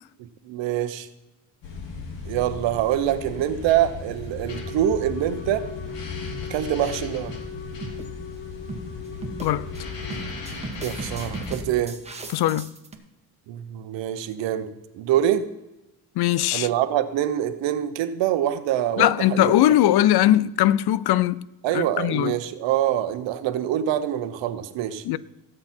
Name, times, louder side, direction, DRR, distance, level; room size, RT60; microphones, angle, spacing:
voice 1, 0.2-1.1 2.2-5.7 6.5-7.3 10.8-12.0 13.5-14.7 14.9-15.4 16.5-19.6 21.6-25.0, right 11 dB, 85° right, 1.1 m, -25 dB
sound 1, 1.6-11.6, left 3 dB, 80° left, 2.4 m, -36 dB
Wind instrument woodwind instrument, 4.5-10.5, left 8 dB, 30° left, 2.3 m, -40 dB
sound 2, 7.3-7.5 7.8-8.1 8.7-8.9 9.2-9.8 10.1-12.9, right 3 dB, 15° right, 1.3 m, -37 dB
voice 2, 12.3-12.7 16.2-16.7 19.0-21.4 21.7-22.3 25.0-25.2, left 13 dB, 60° left, 0.5 m, -20 dB
17.5 x 7.8 x 4.4 m
cardioid pair, 115°, 43 cm